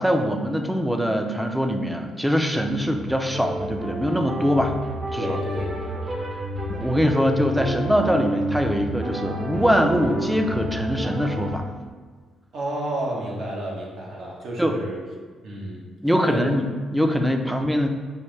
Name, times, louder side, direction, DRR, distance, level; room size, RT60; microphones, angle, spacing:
voice 1, 0.0-4.7 5.1-5.4 6.7-11.7 14.6-14.8 16.0-17.9, equal, 5° right, 5 dB, 0.5 m, -23 dB
sound 1, 2.5-11.6, right 1 dB, 40° right, 0.8 m, -30 dB
voice 2, 5.1-6.1 12.5-15.0 15.4-15.9 16.2-16.5, right 1 dB, 70° right, -3 dB, 1.1 m, -31 dB
5.7 x 2.6 x 3.3 m, 1.5 s
cardioid pair, 90°, 0 cm